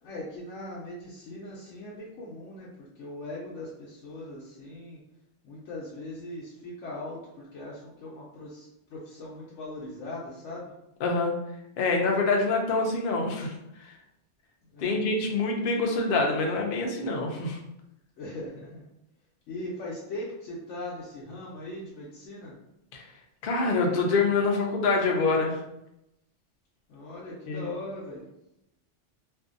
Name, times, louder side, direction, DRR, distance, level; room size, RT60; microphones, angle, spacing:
voice 1, 0.0-5.0 5.4-10.7 14.7-15.0 18.2-18.8 19.5-22.6 26.9-28.3, left 1 dB, 85° left, -6 dB, 0.9 m, -40 dB
voice 2, 11.0-11.3 11.8-13.6 14.8-17.6 22.9-23.0 23.4-25.6 27.5-27.6, left 3 dB, 60° left, 1 dB, 0.6 m, -25 dB
2.6 x 2.5 x 2.5 m, 0.86 s
omnidirectional pair, 1.2 m